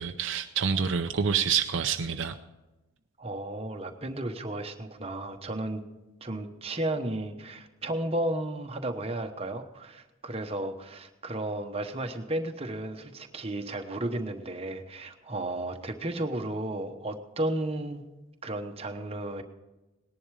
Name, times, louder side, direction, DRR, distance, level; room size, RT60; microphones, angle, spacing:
voice 1, 0.0-2.3, right 6 dB, 60° right, 7 dB, 0.6 m, -27 dB
voice 2, 3.2-5.8 6.2-18.0 18.4-19.4, right 1 dB, 30° right, 5 dB, 1.1 m, -33 dB
19.0 x 11.0 x 4.9 m, 1.1 s
head